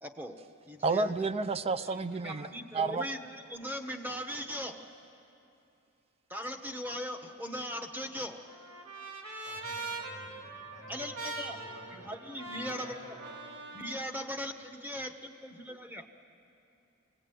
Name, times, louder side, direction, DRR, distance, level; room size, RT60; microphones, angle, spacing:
voice 1, 0.0-1.1 1.8-5.0 6.3-8.5 10.9-11.6 11.9-13.2 13.7-16.1, equal, 10° right, 6 dB, 1.0 m, -39 dB
voice 2, 0.8-2.5 2.7-3.1, right 3 dB, 25° right, 12 dB, 0.4 m, -30 dB
Trumpet, 7.7-14.0, right 3 dB, 85° right, 2.6 m, -43 dB
voice 3, 9.4-12.1 12.5-13.4, equal, 55° right, -1 dB, 6.0 m, -52 dB
24.5 x 18.5 x 9.1 m, 2.7 s
head